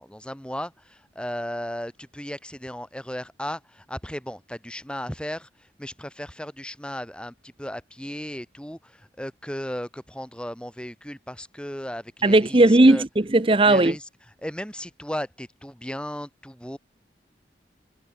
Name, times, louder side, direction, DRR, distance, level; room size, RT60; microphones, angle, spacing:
voice 1, 0.0-13.0 13.6-14.1 14.4-16.8, equal, 5° left, 3.2 m, -35 dB
voice 2, 12.2-13.9, right 2 dB, 30° right, 0.8 m, -17 dB
head